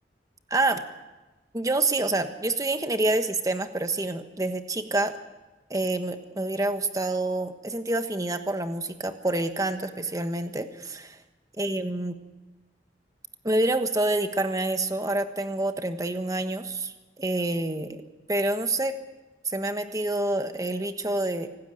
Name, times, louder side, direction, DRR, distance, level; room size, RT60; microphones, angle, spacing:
voice 1, 0.5-0.8 1.5-5.2 5.7-11.2 11.6-12.2 13.4-18.0 18.3-18.9 19.4-21.5, right 2 dB, 20° right, 8 dB, 1.3 m, -27 dB
25.0 x 12.5 x 9.2 m, 1.2 s
head